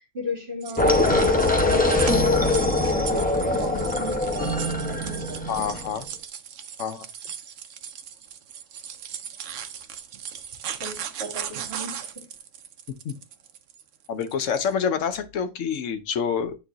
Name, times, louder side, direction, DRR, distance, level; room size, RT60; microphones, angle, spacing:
voice 1, 0.1-2.0 2.9-3.3 3.5-4.5 4.9-5.8 10.8-12.0, left 1 dB, 55° right, 2.2 m, -35 dB
sound 1, 0.6-14.7, right 8 dB, 80° right, 1.0 m, -37 dB
sound 2, 0.8-5.9, left 2 dB, 10° left, 0.8 m, -22 dB
voice 2, 5.5-6.1 6.8-7.1 13.0-13.1 14.1-16.6, left 7 dB, 90° left, 1.1 m, -27 dB
9.0 x 3.1 x 3.9 m
omnidirectional pair, 1.2 m